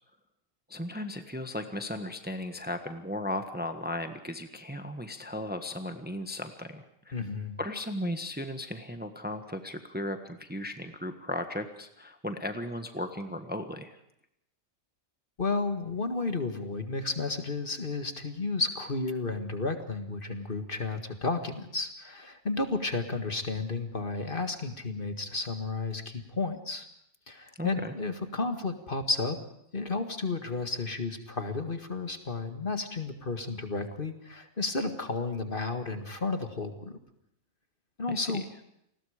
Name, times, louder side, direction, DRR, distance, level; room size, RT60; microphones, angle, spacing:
voice 1, 0.7-7.2 7.6-14.0 27.6-27.9 38.1-38.3, left 1 dB, 5° right, 7 dB, 1.3 m, -36 dB
voice 2, 7.1-7.5 15.4-26.9 27.3-29.4 29.7-37.0 38.0-38.4, left 3 dB, 40° left, 7 dB, 2.0 m, -32 dB
29.0 x 20.5 x 5.0 m, 0.76 s
omnidirectional pair, 1.4 m